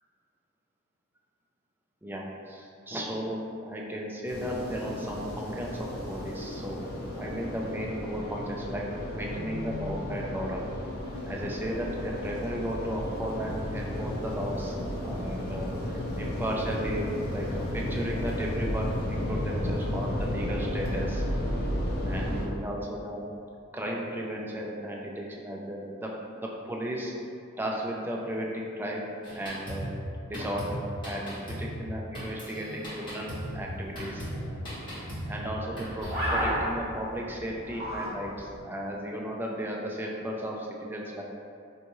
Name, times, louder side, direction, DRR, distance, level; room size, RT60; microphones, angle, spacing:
voice 1, 2.0-6.8 7.1-8.8 9.1-10.6 11.3-14.8 15.0-21.2 22.0-23.3 23.7-26.1 26.4-27.1 27.6-29.9 30.2-34.3 35.3-41.2, equal, 10° right, -2 dB, 0.3 m, -35 dB
sound 1, 4.3-22.5, left 1 dB, 50° left, 0.6 m, -33 dB
Drum kit, 29.2-36.5, equal, 25° left, 1.2 m, -37 dB
sound 2, 33.4-38.6, equal, 50° right, 0.9 m, -35 dB
3.5 x 2.7 x 2.9 m, 2.4 s
head